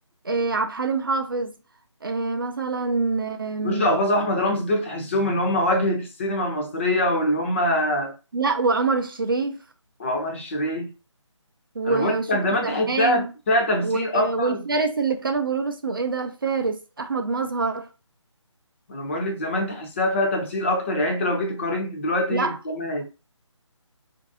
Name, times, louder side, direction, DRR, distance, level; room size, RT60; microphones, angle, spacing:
voice 1, 0.2-1.6 2.0-3.9 8.3-9.6 11.7-12.3 12.6-13.3 13.8-17.9 22.3-22.6, right 4 dB, 45° right, 0.5 m, -25 dB
voice 2, 3.6-8.1 10.0-10.9 11.8-14.6 18.9-23.0, left 1 dB, 25° left, 0.7 m, -24 dB
4.4 x 2.6 x 2.7 m
figure-of-eight pair, 150°, 16 cm